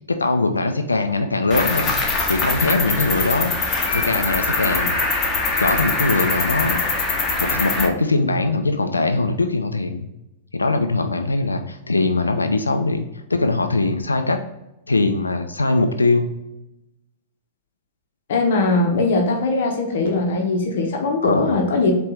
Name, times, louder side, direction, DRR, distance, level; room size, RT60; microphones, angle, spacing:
voice 1, 0.1-2.0 2.3-5.0 5.6-6.8 7.4-10.1 10.5-13.0 13.3-14.4 14.9-16.3 21.2-21.6, left 3 dB, 85° left, 7 dB, 0.3 m, -21 dB
Cricket, 1.5-7.9, left 3 dB, 25° left, 0.9 m, -22 dB
voice 2, 18.3-21.9, left 3 dB, 60° left, 2 dB, 0.7 m, -20 dB
4.6 x 2.9 x 3.3 m, 0.94 s
figure-of-eight pair, 100°, 0 cm